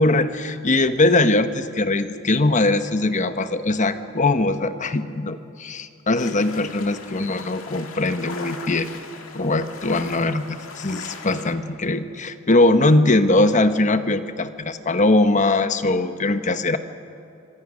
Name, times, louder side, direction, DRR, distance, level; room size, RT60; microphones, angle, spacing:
voice 1, 0.0-8.9 9.3-16.8, left 2 dB, 35° left, 10 dB, 1.0 m, -21 dB
sound 1, 6.2-11.5, left 4 dB, 70° left, 2.1 m, -39 dB
26.0 x 22.5 x 6.3 m, 2.6 s
head